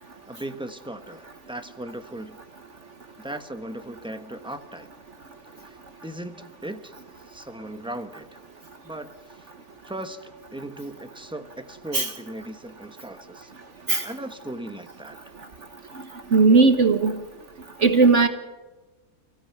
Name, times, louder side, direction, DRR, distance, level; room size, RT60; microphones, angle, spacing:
voice 1, 0.3-2.4 3.2-4.9 5.6-5.8 6.0-6.9 7.3-8.4 8.8-9.1 9.8-13.5 14.0-15.2, right 1 dB, 5° right, 7 dB, 1.2 m, -37 dB
voice 2, 16.3-17.1 17.8-18.3, right 4 dB, 55° right, 7 dB, 1.5 m, -17 dB
30.0 x 16.5 x 6.1 m, 1.2 s
omnidirectional pair, 1.5 m